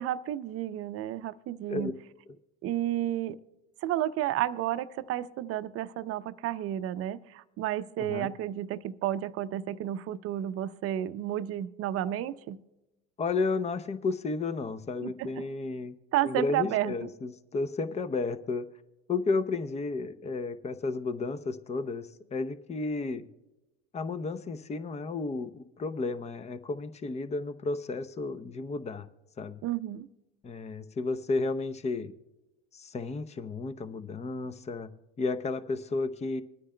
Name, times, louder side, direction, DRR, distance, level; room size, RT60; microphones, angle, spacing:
voice 1, 0.0-1.9 2.6-3.4 3.8-12.6 15.0-15.4 16.1-17.1 29.6-30.1, right 12 dB, 45° right, 13 dB, 0.6 m, -32 dB
voice 2, 8.0-8.3 13.2-15.9 16.2-18.7 19.1-23.3 23.9-29.1 29.4-29.6 30.4-32.1 32.7-34.9 35.2-36.4, left 3 dB, 20° left, 13 dB, 0.6 m, -32 dB
26.5 x 9.7 x 2.2 m, 1.0 s
hypercardioid pair, 95°, 34 cm